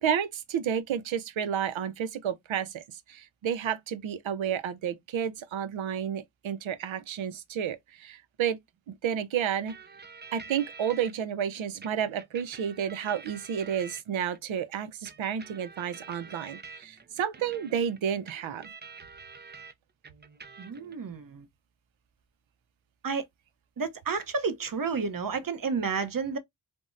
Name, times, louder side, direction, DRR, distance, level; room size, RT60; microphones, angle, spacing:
voice 1, 0.0-2.8 3.1-8.6 8.9-9.7 10.3-18.7, right 8 dB, 75° right, 0.7 m, -31 dB
sound 1, 9.7-11.1 11.8-14.4 15.0-19.7 20.0-21.0, right 5 dB, 25° right, 0.4 m, -48 dB
voice 2, 20.6-21.5 23.0-23.3 23.8-26.4, right 5 dB, 45° right, 0.8 m, -31 dB
3.4 x 2.1 x 2.5 m
cardioid pair, 60°, 47 cm